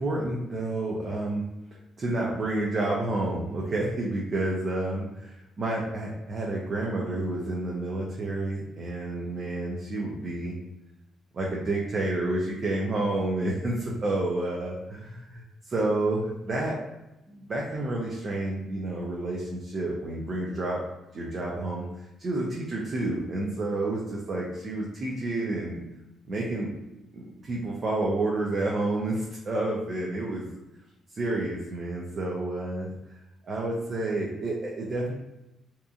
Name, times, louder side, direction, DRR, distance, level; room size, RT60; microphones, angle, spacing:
voice 1, 0.0-1.4 2.0-10.6 11.3-16.8 17.3-20.8 21.1-25.8 26.3-26.7 27.1-30.6 31.1-32.9 33.5-35.1, right 2 dB, 45° right, -3 dB, 0.5 m, -30 dB
2.8 x 2.5 x 2.3 m, 0.94 s
cardioid pair, 90°, 0 cm